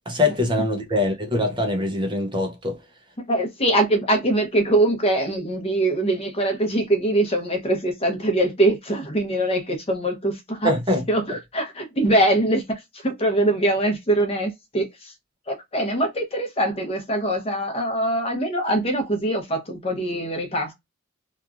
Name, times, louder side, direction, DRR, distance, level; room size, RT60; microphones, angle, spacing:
voice 1, 0.1-2.8 10.6-11.0, left 2 dB, 20° right, 0.6 m, -23 dB
voice 2, 3.2-10.7 11.1-15.1 15.5-20.7, right 1 dB, 25° left, 0.7 m, -23 dB
2.9 x 2.3 x 2.4 m
head